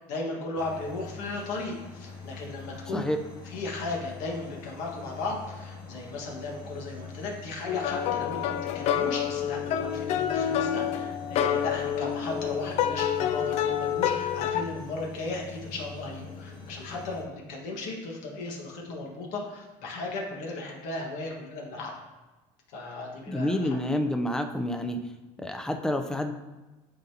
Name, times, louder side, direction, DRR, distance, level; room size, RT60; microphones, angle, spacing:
voice 1, 0.0-3.1 3.4-21.9 22.7-23.8, left 2 dB, 70° left, -1 dB, 1.6 m, -36 dB
sound 1, 0.5-17.2, left 4 dB, 35° left, 2.1 m, -44 dB
sound 2, 7.7-14.6, left 9 dB, 55° left, 0.4 m, -28 dB
voice 2, 23.3-25.0 25.4-26.3, left 1 dB, 5° left, 6 dB, 0.5 m, -28 dB
11.0 x 4.0 x 2.8 m, 1.1 s
cardioid pair, 125°, 13 cm